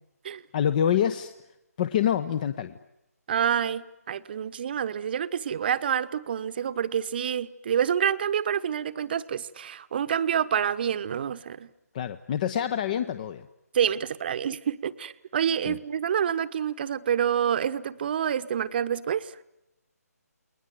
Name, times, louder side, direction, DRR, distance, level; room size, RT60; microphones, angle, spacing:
voice 1, 0.5-1.3 1.8-2.8 11.9-13.5 15.6-15.8, left 9 dB, 30° left, 13 dB, 1.0 m, -26 dB
voice 2, 3.3-11.7 13.7-19.3, right 8 dB, 35° right, 13 dB, 1.1 m, -27 dB
29.5 x 21.5 x 9.3 m, 0.90 s
figure-of-eight pair, 155°, 9 cm